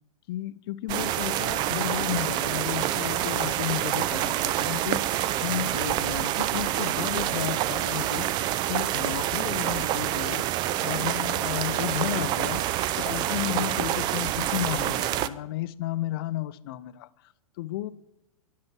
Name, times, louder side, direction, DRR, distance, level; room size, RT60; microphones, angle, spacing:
voice 1, 0.3-8.3 8.7-10.4 10.8-12.6 13.0-17.9, left 14 dB, 40° left, 0.5 m, -33 dB
sound 1, 0.9-15.3, right 13 dB, 25° right, 0.4 m, -27 dB
10.5 x 7.8 x 5.9 m
figure-of-eight pair, 105°, 18 cm